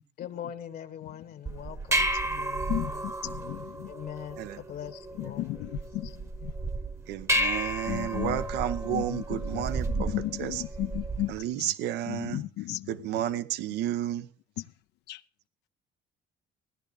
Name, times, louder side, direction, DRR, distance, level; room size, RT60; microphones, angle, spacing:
voice 1, 0.2-3.1 3.9-5.7, left 9 dB, 65° left, 1.3 m, -42 dB
sound 1, 1.5-11.4, right 1 dB, 15° right, 1.0 m, -32 dB
voice 2, 2.7-3.9 5.2-6.1 6.4-6.5 7.9-8.4 8.8-11.7 12.1-13.2 14.6-14.7 15.1-15.2, left 16 dB, 85° left, 0.6 m, -35 dB
voice 3, 7.1-10.1 10.4-10.6 11.3-12.4 12.9-14.3, right 12 dB, 80° right, 0.9 m, -32 dB
17.0 x 10.5 x 4.9 m
cardioid pair, 110°, 17 cm